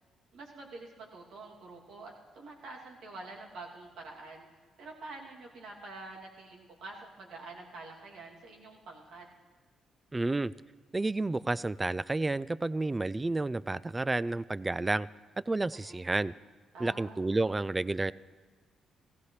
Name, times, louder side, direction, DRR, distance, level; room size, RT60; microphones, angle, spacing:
voice 1, 0.3-4.4 4.8-9.3 15.7-16.0 16.7-17.3, right 3 dB, 80° right, -2 dB, 2.6 m, -47 dB
voice 2, 10.1-10.5 10.9-15.1 15.5-16.3 16.8-18.1, right 2 dB, 20° right, 18 dB, 0.3 m, -30 dB
16.5 x 16.0 x 3.3 m, 1.5 s
cardioid pair, 90°, 0 cm